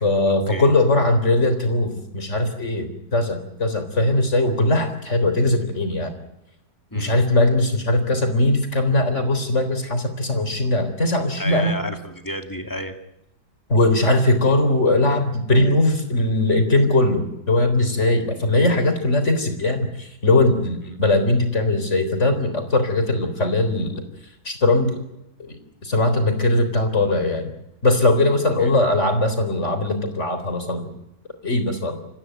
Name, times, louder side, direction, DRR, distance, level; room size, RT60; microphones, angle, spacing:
voice 1, 0.0-6.2 6.9-11.7 13.7-24.0 24.4-25.0 25.4-27.5 27.8-30.9 31.4-32.0, left 2 dB, 45° left, 8 dB, 4.2 m, -20 dB
voice 2, 6.9-7.2 11.4-12.9 28.6-28.7, left 1 dB, 10° left, 6 dB, 2.3 m, -31 dB
28.5 x 15.0 x 9.2 m, 0.87 s
omnidirectional pair, 1.8 m